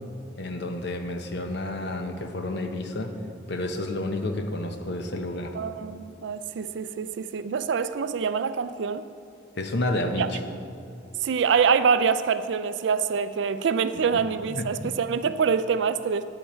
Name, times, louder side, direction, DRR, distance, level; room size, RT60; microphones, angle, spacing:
voice 1, 0.4-3.1 3.5-5.6 9.6-10.4 14.1-14.2 14.5-14.9, left 1 dB, 55° left, 0.8 m, -30 dB
voice 2, 5.5-9.0 10.2-10.3 11.2-16.2, right 6 dB, 60° right, 0.4 m, -25 dB
10.0 x 9.0 x 4.4 m
head